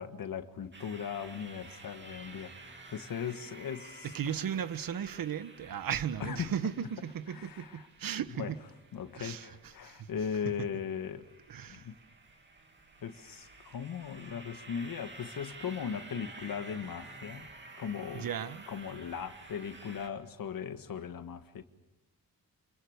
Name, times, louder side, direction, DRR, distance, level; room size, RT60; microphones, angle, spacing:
voice 1, 0.0-4.6 6.2-6.6 7.3-7.9 8.4-8.5 8.9-11.3 11.7-12.0 13.0-18.3 18.7-21.6, left 7 dB, 65° left, 1.7 m, -38 dB
sound 1, 0.7-20.1, right 3 dB, 30° right, 2.9 m, -52 dB
voice 2, 4.1-8.6 9.2-9.5 9.8-10.1 11.5-11.9 18.1-18.6, right 8 dB, 65° right, 1.4 m, -36 dB
28.0 x 22.5 x 6.6 m
cardioid pair, 100°, 36 cm